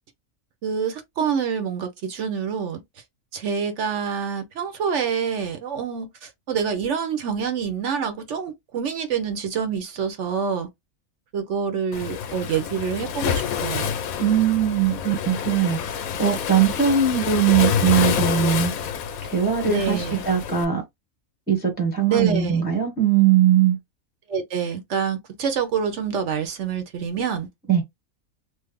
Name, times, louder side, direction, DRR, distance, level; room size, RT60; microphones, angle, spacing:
voice 1, 0.6-2.8 3.3-10.7 11.3-13.9 19.7-20.2 22.1-22.6 24.3-27.5, right 7 dB, 65° right, 1.0 m, -26 dB
Waves surf, 11.9-20.6, left 8 dB, 90° left, 1.1 m, -27 dB
voice 2, 14.2-18.7 19.2-20.8 21.5-23.8 27.7-27.8, right 8 dB, 10° right, 0.8 m, -20 dB
3.2 x 2.0 x 3.5 m
omnidirectional pair, 1.4 m